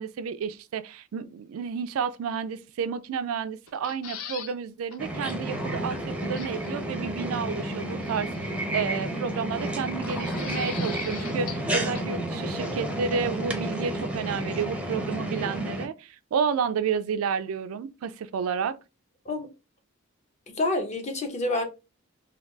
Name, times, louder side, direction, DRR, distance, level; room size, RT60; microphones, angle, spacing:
voice 1, 0.0-18.8, right 6 dB, 75° right, 0.3 m, -31 dB
sound 1, 3.7-4.5 4.9-5.0 5.3-5.4 6.3-6.7 8.0-8.6 10.0-11.7 11.9-12.0, left 8 dB, 80° left, 0.5 m, -41 dB
sound 2, 5.0-15.9, right 1 dB, 5° right, 0.5 m, -31 dB
voice 2, 20.5-21.6, left 2 dB, 35° left, 0.6 m, -28 dB
3.8 x 2.3 x 2.2 m
head